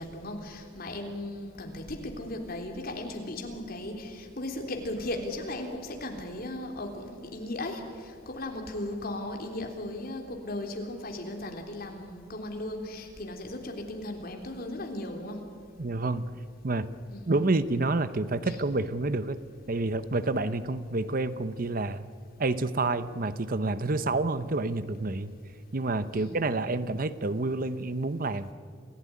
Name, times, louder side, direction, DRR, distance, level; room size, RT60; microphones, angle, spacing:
voice 1, 0.0-15.4 17.1-17.4 18.4-18.6 26.1-26.4, left 1 dB, 50° left, 3 dB, 3.5 m, -37 dB
voice 2, 15.8-16.4 16.6-16.9 17.3-19.4 19.7-22.1 22.4-25.3 25.7-28.5, right 2 dB, 45° right, 13 dB, 0.8 m, -28 dB
28.0 x 16.5 x 9.7 m, 2.2 s
head